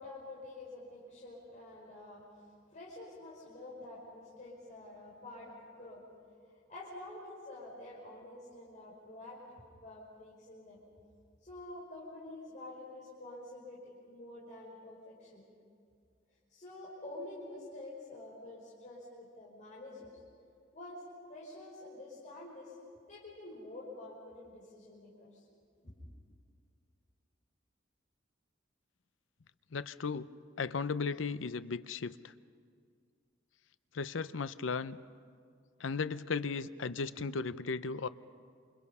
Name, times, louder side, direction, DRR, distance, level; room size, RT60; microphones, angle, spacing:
voice 1, 0.0-2.2 2.7-6.0 6.7-10.8 11.4-15.4 16.5-20.1 20.7-21.0 21.3-22.7 23.1-25.4 25.8-26.1, left 2 dB, 40° left, -6 dB, 5.5 m, -48 dB
voice 2, 29.7-30.3 30.6-32.3 33.9-35.0 35.8-38.1, left 4 dB, 90° left, 14 dB, 0.7 m, -36 dB
28.5 x 27.5 x 5.6 m, 2.2 s
head